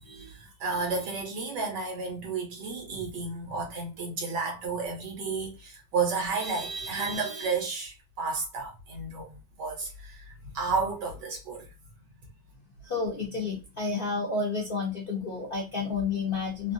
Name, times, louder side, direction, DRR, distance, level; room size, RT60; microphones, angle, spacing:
voice 1, 0.0-11.7, right 4 dB, 80° right, 1.6 m, -32 dB
voice 2, 12.8-16.7, left 4 dB, 55° left, 0.6 m, -30 dB
3.3 x 2.2 x 2.6 m
omnidirectional pair, 1.8 m